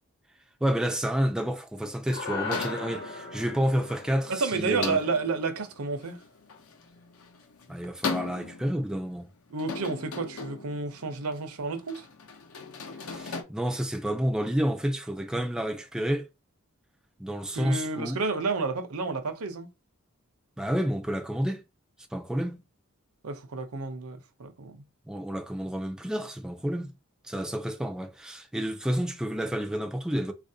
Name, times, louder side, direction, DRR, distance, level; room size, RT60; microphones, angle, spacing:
voice 1, 0.6-5.0 7.7-9.3 13.0-16.3 17.2-18.2 20.6-21.6 22.1-22.6 25.1-26.9 27.2-30.3, equal, 5° right, 0.3 m, -29 dB
sound 1, 2.1-6.6, left 4 dB, 50° left, 1.0 m, -39 dB
sound 2, 2.5-13.4, left 4 dB, 75° left, 0.7 m, -39 dB
voice 2, 4.3-6.2 9.5-12.0 17.5-19.7 23.2-24.8, right 4 dB, 85° right, 0.7 m, -31 dB
4.1 x 2.5 x 2.7 m
head